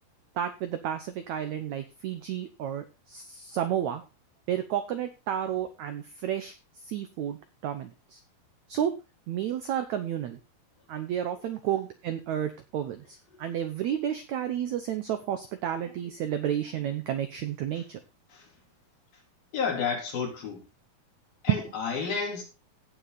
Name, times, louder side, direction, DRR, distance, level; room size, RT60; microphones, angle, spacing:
voice 1, 0.4-4.0 4.5-6.5 6.9-7.4 7.6-8.2 8.7-8.9 9.3-10.4 10.9-18.0 21.5-21.6, right 10 dB, 80° right, 1.6 m, -31 dB
voice 2, 19.5-20.6 21.4-22.4, left 6 dB, 65° left, 5.2 m, -31 dB
16.5 x 5.8 x 4.1 m
omnidirectional pair, 4.4 m